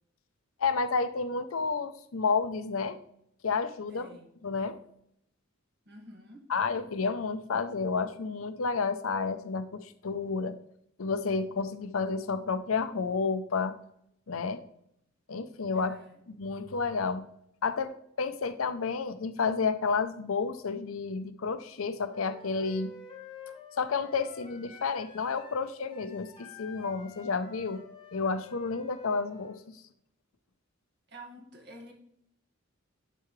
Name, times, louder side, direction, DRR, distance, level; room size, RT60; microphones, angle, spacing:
voice 1, 0.6-3.0 3.4-4.1 4.4-4.8 6.5-10.6 11.0-13.7 14.3-14.6 15.3-15.9 16.4-17.3 17.6-22.9 23.8-27.8 28.1-29.8, left 4 dB, 80° left, 11 dB, 0.6 m, -31 dB
voice 2, 3.9-4.3 5.9-6.4 15.7-16.2 31.1-31.9, right 1 dB, 55° right, 0 dB, 1.9 m, -49 dB
Wind instrument woodwind instrument, 22.1-29.6, left 4 dB, 25° left, 1.5 m, -49 dB
11.0 x 4.7 x 3.2 m, 0.73 s
head